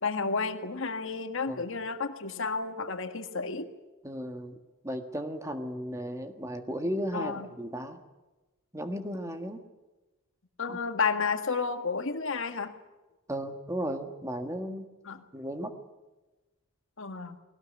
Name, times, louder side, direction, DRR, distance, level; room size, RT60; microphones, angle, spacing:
voice 1, 0.0-3.7 7.1-7.5 10.6-12.7 15.0-15.2 17.0-17.4, left 4 dB, 60° left, 7 dB, 1.6 m, -31 dB
voice 2, 4.0-4.6 4.8-8.0 8.7-9.6 10.7-10.8 13.3-14.9 15.3-15.7, equal, 15° right, 6 dB, 1.5 m, -35 dB
20.0 x 18.0 x 9.7 m, 1.1 s
head